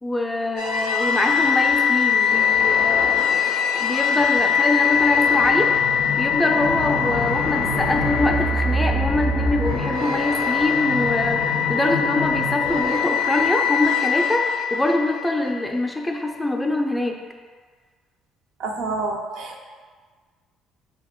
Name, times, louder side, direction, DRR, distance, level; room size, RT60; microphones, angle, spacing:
voice 1, 0.0-3.4 3.7-5.7 6.2-17.2, left 1 dB, 10° left, 3 dB, 0.4 m, -24 dB
sound 1, 0.6-15.7, left 6 dB, 90° left, 0.4 m, -22 dB
voice 2, 18.6-19.6, right 3 dB, 75° right, 2 dB, 0.4 m, -28 dB
2.8 x 2.6 x 3.6 m, 1.5 s
supercardioid pair, 70°, 0 cm